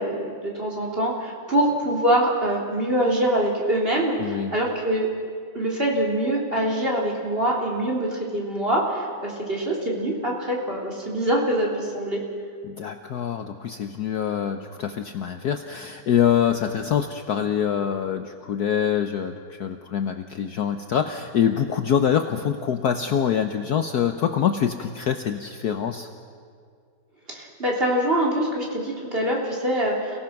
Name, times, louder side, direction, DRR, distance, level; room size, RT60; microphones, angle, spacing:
voice 1, 0.0-5.1 5.5-12.2 27.3-30.2, right 1 dB, 30° right, -3 dB, 3.8 m, -24 dB
voice 2, 4.2-4.5 12.6-26.1, left 8 dB, 60° left, 7 dB, 1.2 m, -25 dB
29.5 x 17.5 x 5.9 m, 2.2 s
omnidirectional pair, 2.2 m